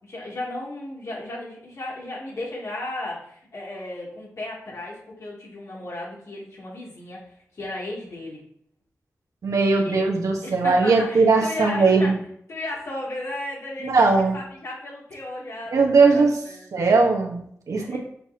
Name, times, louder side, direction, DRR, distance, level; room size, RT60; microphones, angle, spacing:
voice 1, 0.0-8.4 9.6-10.1 10.4-12.1 12.5-16.9 17.7-18.0, left 2 dB, 65° left, -5 dB, 2.9 m, -35 dB
voice 2, 9.4-12.2 13.8-14.4 15.7-16.3 16.7-18.0, right 4 dB, 80° right, 1 dB, 1.4 m, -19 dB
6.9 x 5.4 x 2.9 m, 0.67 s
cardioid pair, 70°, 6 cm